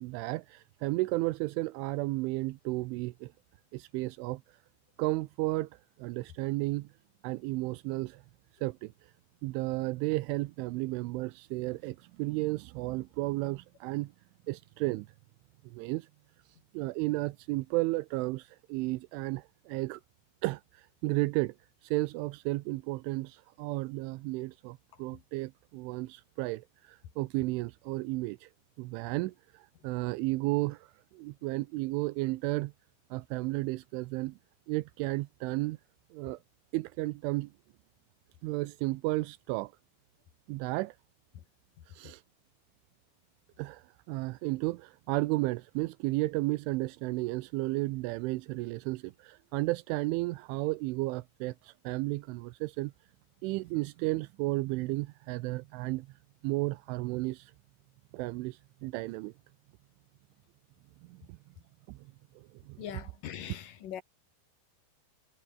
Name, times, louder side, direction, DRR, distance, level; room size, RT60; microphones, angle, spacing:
voice 1, 0.0-3.3 3.7-4.6 5.0-5.7 6.0-6.9 7.2-8.2 8.5-9.1 9.4-14.1 14.5-15.1 15.7-16.1 16.7-20.0 20.4-21.5 21.8-28.5 28.8-32.7 33.1-34.4 34.7-35.8 36.1-36.4 36.7-37.5 38.4-39.7 40.5-41.0 41.9-42.2 43.6-52.9 53.4-56.1 56.4-57.5 58.1-59.3 61.1-61.4 61.9-62.0 62.4-62.8, right 21 dB, 85° right, 3.2 m, -33 dB
voice 2, 62.8-64.0, left 10 dB, 60° left, 2.8 m, -41 dB
omnidirectional pair, 5.5 m